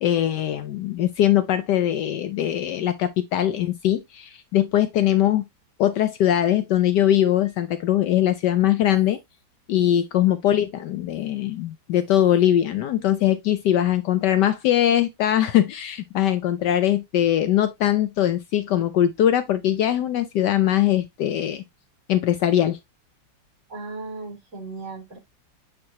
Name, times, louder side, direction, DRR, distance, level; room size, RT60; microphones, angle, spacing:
voice 1, 0.0-5.5 5.8-9.2 9.7-21.6 22.1-22.8, left 11 dB, 70° left, 1.1 m, -21 dB
voice 2, 23.7-25.2, right 3 dB, 40° right, 4.1 m, -36 dB
8.6 x 4.1 x 2.8 m
omnidirectional pair, 2.1 m